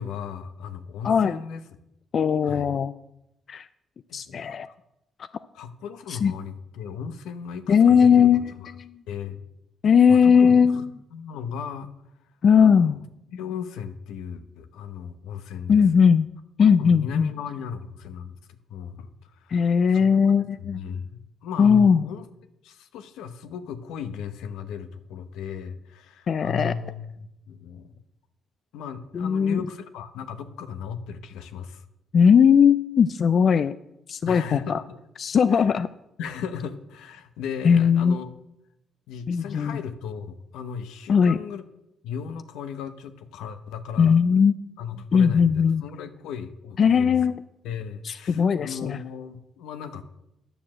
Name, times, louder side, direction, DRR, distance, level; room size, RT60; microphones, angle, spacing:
voice 1, 0.0-1.6 2.4-2.7 4.1-4.7 5.5-8.7 9.1-9.4 10.1-10.9 11.1-11.9 12.6-13.0 13.3-15.8 16.6-22.3 22.6-27.2 27.5-28.0 28.7-31.8 33.6-33.7 34.3-35.0 35.5-35.8 36.2-38.3 39.1-41.6 42.0-44.2 44.8-47.2 47.6-50.0, left 7 dB, 90° left, 10 dB, 0.9 m, -36 dB
voice 2, 1.0-1.4 2.1-2.9 3.5-3.7 4.1-4.7 6.1-6.3 7.7-8.9 9.8-10.8 12.4-13.0 15.7-16.3 16.6-17.3 19.5-20.8 21.6-22.1 26.3-26.7 29.1-29.6 32.1-33.7 34.1-34.8 35.2-35.9 37.6-38.2 39.3-39.8 41.1-41.4 44.0-44.6 45.1-45.8 46.8-47.4 48.0-49.0, left 6 dB, 50° left, 13 dB, 0.4 m, -19 dB
9.8 x 7.0 x 7.4 m, 0.86 s
cardioid pair, 90°, 0 cm